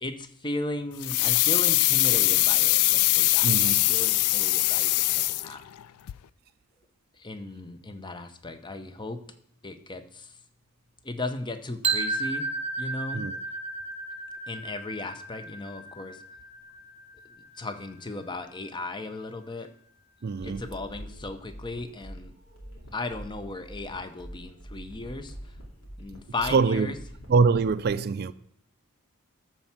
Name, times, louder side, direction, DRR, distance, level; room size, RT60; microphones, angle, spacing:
voice 1, 0.0-5.6 7.2-9.2 9.6-10.3 11.0-12.5 12.8-13.2 14.5-16.2 17.6-19.7 20.4-22.3 22.9-25.3 26.0-27.0, left 2 dB, 20° left, 0.7 m, -36 dB
sound 1, 1.0-5.8 6.1-6.2, left 18 dB, 90° left, 0.3 m, -22 dB
voice 2, 3.4-3.8 13.1-13.3 20.2-20.6 26.5-26.9 27.3-28.3, right 5 dB, 45° right, 0.4 m, -23 dB
sound 2, 11.8-17.8, right 3 dB, 30° right, 0.8 m, -33 dB
sound 3, 20.4-27.5, equal, 65° left, 2.5 m, -45 dB
13.0 x 4.4 x 5.9 m
head